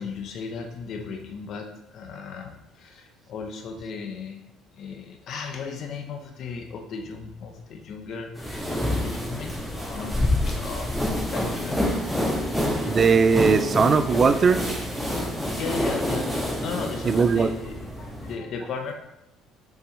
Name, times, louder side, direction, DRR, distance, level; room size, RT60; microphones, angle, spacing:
voice 1, 0.0-4.4 4.7-11.0 11.3-12.0 15.5-18.9, left 5 dB, 55° left, 4 dB, 1.1 m, -36 dB
sound 1, 8.3-18.3, left 1 dB, 5° left, 2.1 m, -27 dB
voice 2, 12.8-14.7 17.0-17.5, right 5 dB, 35° right, 10 dB, 0.4 m, -19 dB
6.8 x 6.2 x 3.3 m, 0.89 s
cardioid pair, 105°, 0 cm